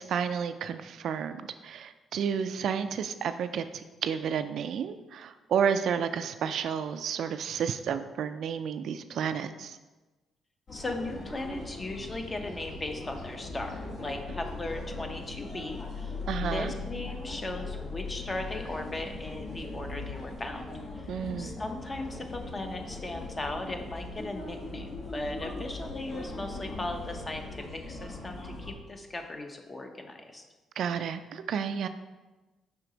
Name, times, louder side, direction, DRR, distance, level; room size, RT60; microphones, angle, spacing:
voice 1, 0.0-9.8 16.3-16.7 21.1-21.6 30.8-31.9, right 7 dB, 70° right, 10 dB, 0.3 m, -31 dB
sound 1, 10.7-28.7, left 3 dB, 50° left, 1.3 m, -39 dB
voice 2, 10.7-20.6 20.9-21.1 21.4-30.4, left 2 dB, 25° left, 4 dB, 0.8 m, -37 dB
5.6 x 4.6 x 3.9 m, 1.2 s
cardioid pair, 90°, 0 cm